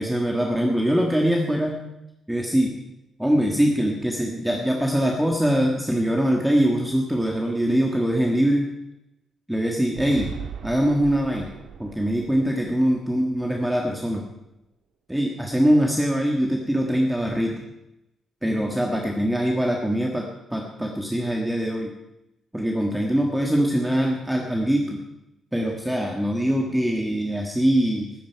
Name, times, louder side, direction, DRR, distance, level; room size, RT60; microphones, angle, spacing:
voice 1, 0.0-1.8 2.3-2.8 3.2-8.7 9.5-10.3 10.6-14.2 15.1-17.6 18.4-21.9 22.5-25.0 25.5-28.1, equal, 5° right, 0 dB, 1.6 m, -23 dB
sound 1, 10.0-14.1, right 7 dB, 65° right, 1.7 m, -40 dB
20.0 x 15.5 x 4.7 m, 0.89 s
cardioid pair, 170°, 0 cm